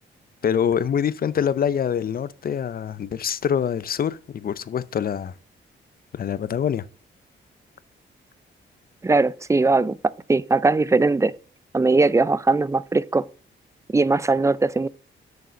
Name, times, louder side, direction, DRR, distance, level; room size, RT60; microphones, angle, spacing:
voice 1, 0.4-5.3 6.1-6.8, left 8 dB, 50° left, 0.5 m, -25 dB
voice 2, 9.0-10.0 10.3-11.3 11.7-13.2 13.9-14.9, right 3 dB, 15° right, 0.3 m, -20 dB
6.8 x 6.5 x 5.0 m
cardioid pair, 95°, 20 cm